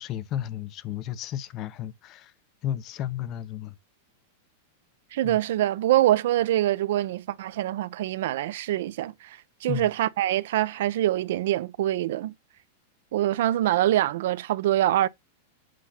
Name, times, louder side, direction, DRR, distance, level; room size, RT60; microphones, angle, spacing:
voice 1, 0.0-2.3 2.6-3.8 5.2-5.4 9.7-9.9, left 11 dB, 35° left, 0.6 m, -33 dB
voice 2, 5.1-12.3 13.1-15.1, right 13 dB, 70° right, 0.6 m, -24 dB
7.7 x 2.8 x 5.6 m
supercardioid pair, 145°, 0 cm